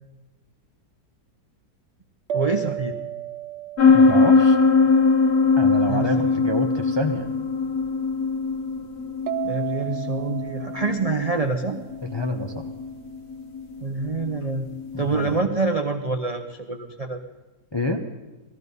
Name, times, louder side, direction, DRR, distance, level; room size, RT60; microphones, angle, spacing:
voice 1, 2.3-2.9 5.9-6.1 9.4-11.8 13.8-14.7 15.0-17.2, right 3 dB, 40° right, 5 dB, 0.5 m, -26 dB
sound 1, 2.3-5.8 9.3-12.3, right 12 dB, 80° right, 1.4 m, -34 dB
sound 2, 3.8-15.3, left 4 dB, 45° left, 1.2 m, -21 dB
voice 2, 3.9-4.6 5.6-7.3 12.0-12.7 14.9-15.4 17.7-18.0, left 1 dB, 25° left, 4 dB, 0.6 m, -27 dB
18.5 x 14.0 x 5.4 m, 1.1 s
omnidirectional pair, 1.8 m